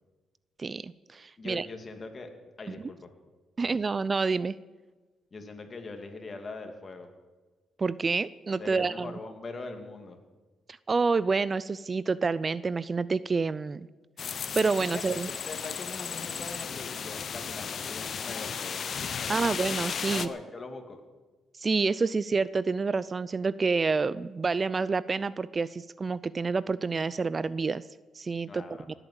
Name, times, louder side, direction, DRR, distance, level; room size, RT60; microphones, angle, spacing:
voice 1, 0.6-1.7 2.7-2.8 3.6-4.5 7.8-9.1 10.9-13.9 14.3-15.3 19.3-20.3 21.6-27.8 28.2-28.6, right 4 dB, 30° right, 18 dB, 0.4 m, -28 dB
voice 2, 1.4-2.3 2.6-3.1 3.6-3.8 5.3-7.1 8.6-10.2 14.9-18.8 19.2-21.0 28.5-28.9, left 3 dB, 35° left, 5 dB, 2.7 m, -42 dB
sound 1, 14.2-20.3, left 7 dB, 50° left, 0.8 m, -35 dB
19.0 x 8.9 x 8.1 m, 1.3 s
cardioid pair, 90°, 0 cm